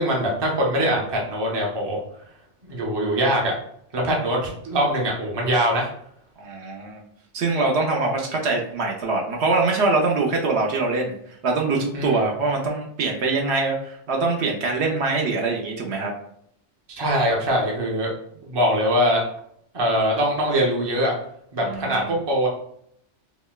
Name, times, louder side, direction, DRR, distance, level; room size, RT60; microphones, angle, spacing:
voice 1, 0.0-2.0 2.6-3.5 3.9-5.9 11.9-12.2 16.9-18.1 18.4-19.2 19.7-21.1 21.5-22.5, equal, 30° right, -2 dB, 0.6 m, -22 dB
voice 2, 6.4-7.0 7.3-16.1 21.6-22.1, right 3 dB, 70° right, 1 dB, 0.8 m, -23 dB
4.0 x 2.1 x 2.2 m, 0.69 s
omnidirectional pair, 1.2 m